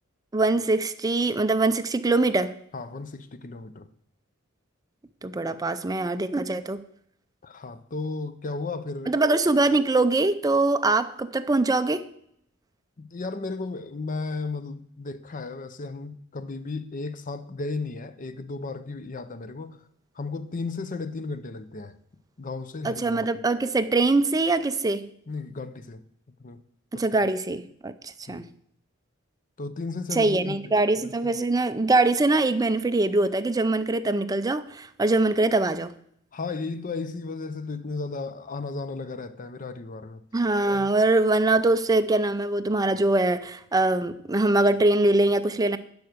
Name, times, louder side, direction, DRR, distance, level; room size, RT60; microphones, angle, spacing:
voice 1, 0.3-2.5 5.2-6.8 9.1-12.1 22.8-25.1 26.9-28.4 30.1-35.9 40.3-45.8, right 2 dB, 20° right, 0.5 m, -23 dB
voice 2, 2.7-3.9 7.4-9.1 13.0-19.8 20.2-22.0 22.4-23.3 25.3-26.0 26.4-26.6 26.9-27.0 28.3-28.5 29.6-31.4 36.3-40.2 40.7-40.9, left 3 dB, 40° left, 0.6 m, -34 dB
11.5 x 4.8 x 6.6 m
head